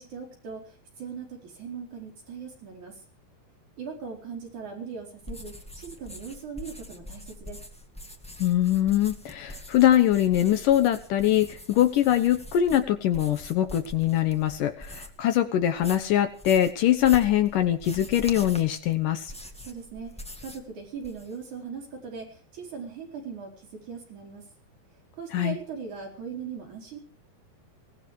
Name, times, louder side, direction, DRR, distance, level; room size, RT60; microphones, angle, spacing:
voice 1, 0.0-3.0 3.8-7.6 19.6-24.4 25.1-27.0, right 6 dB, 50° right, 1 dB, 5.6 m, -39 dB
sound 1, 5.2-15.3 15.6-20.7 21.0-21.5, left 1 dB, 5° left, 0.5 m, -43 dB
voice 2, 8.4-19.3 25.3-25.6, left 12 dB, 70° left, 9 dB, 2.4 m, -23 dB
24.0 x 17.5 x 3.2 m, 0.41 s
omnidirectional pair, 4.3 m